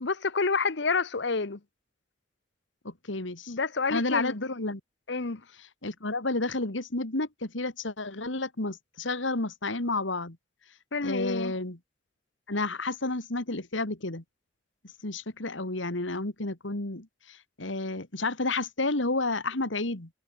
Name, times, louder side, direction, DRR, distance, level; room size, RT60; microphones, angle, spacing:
voice 1, 0.0-1.6 3.5-4.4 5.1-5.4 10.9-11.5, left 4 dB, 65° left, 1.1 m, -28 dB
voice 2, 2.8-3.5 3.9-4.8 5.8-10.4 11.0-11.8 12.5-14.2 15.0-20.1, left 2 dB, 80° left, 2.6 m, -31 dB
head